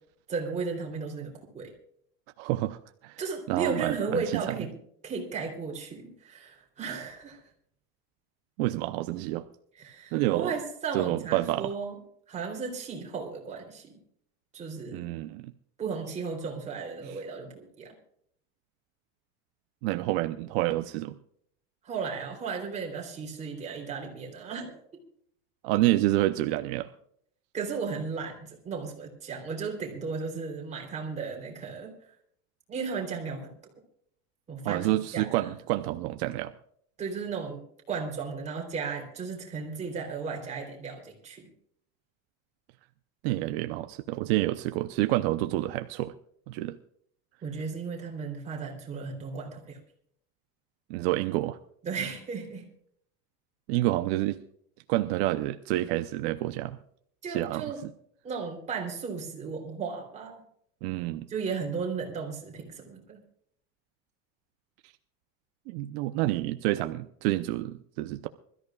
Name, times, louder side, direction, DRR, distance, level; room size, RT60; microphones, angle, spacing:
voice 1, 0.3-1.7 3.2-4.8 5.0-7.4 9.8-11.9 12.3-14.0 14.5-15.1 15.8-17.9 21.8-24.8 27.5-32.0 32.7-33.7 34.5-35.5 37.0-37.6 37.9-41.5 47.4-49.8 51.8-52.7 57.2-57.8 58.2-60.4 61.3-63.2, right 5 dB, 20° right, 1 dB, 3.3 m, -35 dB
voice 2, 2.4-3.2 3.5-4.6 8.6-9.5 10.1-10.5 10.9-11.7 14.9-15.5 19.8-21.2 25.6-26.9 34.6-36.5 43.2-46.1 46.5-46.8 50.9-51.6 53.7-54.4 54.9-56.8 57.3-57.6 60.8-61.3 65.7-68.3, right 16 dB, 70° right, 9 dB, 0.7 m, -28 dB
25.5 x 13.5 x 2.4 m, 0.66 s
cardioid pair, 170°, 32 cm